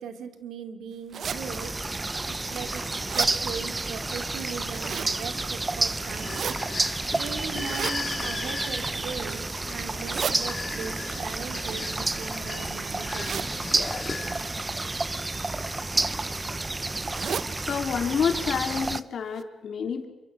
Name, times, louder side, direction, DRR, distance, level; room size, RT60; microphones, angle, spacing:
voice 1, 0.0-1.8 2.3-6.5 7.1-13.5, right 6 dB, 90° right, 7 dB, 2.6 m, -39 dB
sound 1, 1.1-1.4 2.0-2.1 2.6-3.3 4.5-5.1 6.1-6.5 7.5-8.0 8.7-9.1 9.8-10.4 11.5-12.5 13.2-13.5 14.2-14.4 15.4-15.7 16.0-16.1 16.4-16.5 17.0-17.5 17.9-18.0 18.3-18.4 19.0-19.1 19.4-19.5, right 7 dB, 65° right, 0.9 m, -34 dB
sound 2, 1.2-19.0, right 2 dB, 20° right, 0.8 m, -30 dB
sound 3, 6.0-14.6, left 4 dB, 40° left, 3.7 m, -38 dB
voice 2, 17.6-20.1, left 6 dB, 70° left, 5 dB, 3.4 m, -28 dB
28.5 x 24.5 x 6.5 m, 1.1 s
cardioid pair, 90°, 0 cm